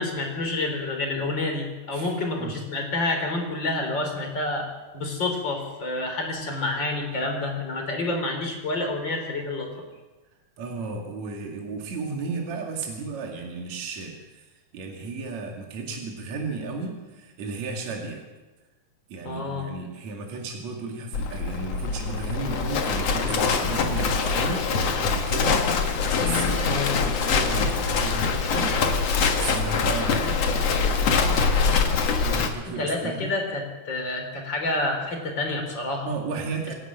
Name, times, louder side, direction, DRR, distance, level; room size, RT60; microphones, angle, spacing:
voice 1, 0.0-4.7 4.9-9.8 19.2-19.7 26.6-27.0 32.7-36.1, left 2 dB, 30° left, 3 dB, 4.2 m, -28 dB
voice 2, 10.6-18.2 19.1-24.7 25.1-28.8 29.3-33.3 36.0-36.7, right 4 dB, 55° right, 1 dB, 3.4 m, -34 dB
Livestock farm animals working animals, 21.1-32.5, left 5 dB, 55° left, 2.4 m, -24 dB
27.0 x 11.5 x 8.8 m, 1.2 s
omnidirectional pair, 4.0 m